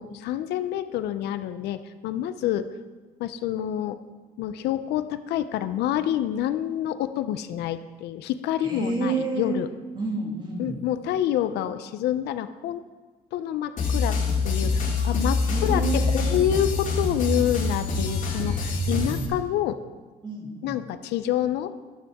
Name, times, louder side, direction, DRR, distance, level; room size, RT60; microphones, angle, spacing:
voice 1, 0.0-2.7 3.2-4.0 4.4-9.7 10.6-12.8 13.3-14.2 14.4-19.8 20.6-21.7, left 11 dB, 80° left, 11 dB, 0.6 m, -27 dB
voice 2, 8.6-9.6 9.9-10.8 15.4-16.4 20.2-20.8, right 3 dB, 25° right, 0 dB, 2.3 m, -29 dB
sound 1, 13.8-19.3, left 3 dB, 50° left, 2.5 m, -25 dB
12.0 x 9.2 x 3.6 m, 1.3 s
cardioid pair, 110°, 17 cm